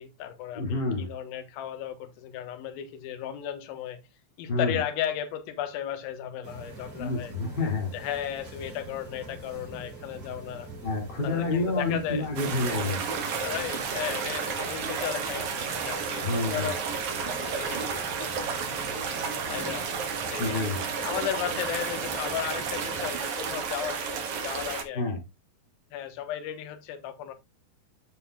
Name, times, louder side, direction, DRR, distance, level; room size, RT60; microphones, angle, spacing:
voice 1, 0.0-4.0 4.4-7.3 7.9-10.7 11.2-12.3 13.4-18.3 19.5-19.9 20.3-20.7 21.0-25.2 25.9-27.3, left 10 dB, 70° left, 2.7 m, -35 dB
voice 2, 0.5-1.1 4.5-4.8 7.0-7.9 10.8-13.0 16.2-16.7 20.4-20.8 24.9-25.2, left 3 dB, 30° left, 2.3 m, -28 dB
sound 1, 6.4-23.1, right 2 dB, 30° right, 4.3 m, -44 dB
sound 2, 12.4-24.8, right 6 dB, 55° right, 2.4 m, -32 dB
14.0 x 5.5 x 2.3 m
omnidirectional pair, 4.8 m